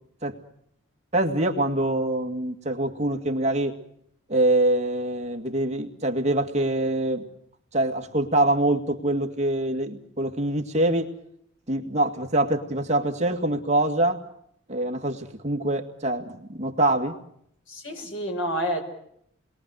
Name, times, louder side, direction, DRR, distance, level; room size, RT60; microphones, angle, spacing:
voice 1, 1.1-3.8 4.3-7.3 7.7-11.1 11.7-14.2 14.7-17.2, right 1 dB, 35° right, 3 dB, 2.2 m, -24 dB
voice 2, 17.7-18.8, equal, 65° left, 5 dB, 6.1 m, -29 dB
29.5 x 22.0 x 6.5 m, 0.71 s
head